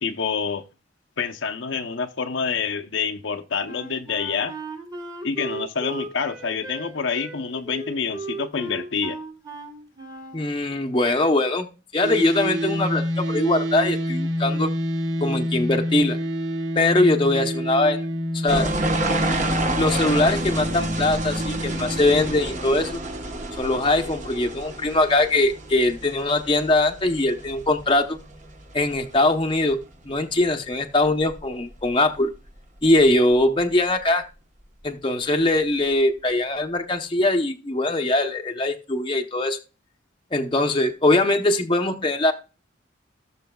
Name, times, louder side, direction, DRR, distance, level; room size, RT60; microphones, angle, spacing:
voice 1, 0.0-0.6 1.2-4.5 5.2-9.2, left 5 dB, 75° left, 0.7 m, -27 dB
Wind instrument woodwind instrument, 3.7-10.5, right 2 dB, 20° right, 1.6 m, -36 dB
voice 2, 10.3-11.7 11.9-14.7 15.2-16.2 16.8-18.0 18.3-18.7 19.8-23.0 23.6-28.2 28.7-32.3 32.8-34.2 34.8-39.6 40.3-42.3, left 2 dB, 25° left, 0.7 m, -21 dB
sound 1, 12.0-22.3, equal, 75° right, 1.3 m, -27 dB
sound 2, 18.5-29.8 30.1-30.6 31.1-31.9 32.1-32.2 33.0-33.1 33.3-33.4, right 2 dB, 40° right, 1.1 m, -30 dB
17.5 x 6.7 x 2.3 m
head